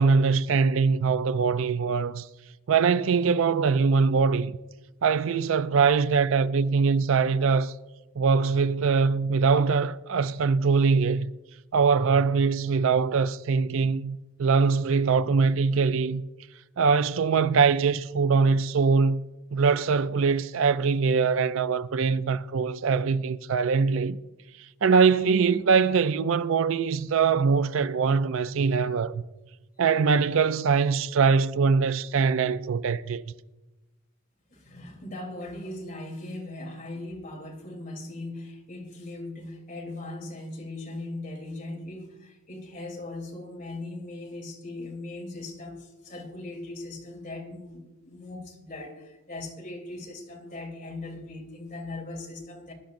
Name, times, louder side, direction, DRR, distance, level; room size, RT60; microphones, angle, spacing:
voice 1, 0.0-2.3 2.7-4.5 5.0-7.7 8.2-11.3 11.7-16.2 16.8-19.2 19.5-24.2 24.8-29.2 29.8-33.2, right 5 dB, 65° right, 0.4 m, -22 dB
voice 2, 34.5-52.7, left 2 dB, 40° left, 3.3 m, -39 dB
22.0 x 11.5 x 2.6 m
head